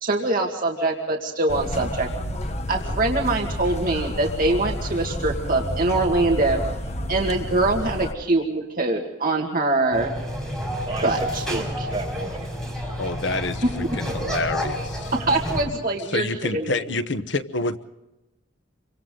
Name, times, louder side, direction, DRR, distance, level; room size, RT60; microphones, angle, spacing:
voice 1, 0.0-2.1 2.7-6.6 7.1-10.1 11.0-11.6 15.1-16.3 16.5-16.7, right 2 dB, 50° right, 1 dB, 2.0 m, -23 dB
sound 1, 1.5-8.1, left 1 dB, 35° left, 1.1 m, -30 dB
sound 2, 9.9-15.6, equal, 5° left, 5.7 m, -30 dB
voice 2, 10.9-12.5, right 2 dB, 25° right, -2 dB, 7.0 m, -33 dB
voice 3, 13.0-15.1 16.1-17.8, left 2 dB, 65° left, 10 dB, 1.0 m, -28 dB
28.5 x 24.5 x 3.8 m, 0.99 s
head